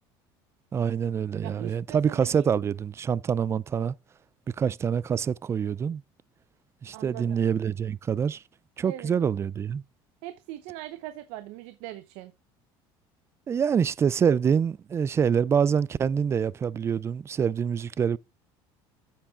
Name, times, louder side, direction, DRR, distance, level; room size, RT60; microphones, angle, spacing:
voice 1, 0.7-3.9 4.6-6.0 6.8-8.4 8.8-9.8 13.5-18.2, right 7 dB, 25° right, 0.4 m, -26 dB
voice 2, 1.4-2.5 6.9-7.4 8.8-9.2 10.2-12.3, right 14 dB, 80° right, 0.8 m, -41 dB
8.6 x 7.3 x 3.6 m
cardioid pair, 120°, 11 cm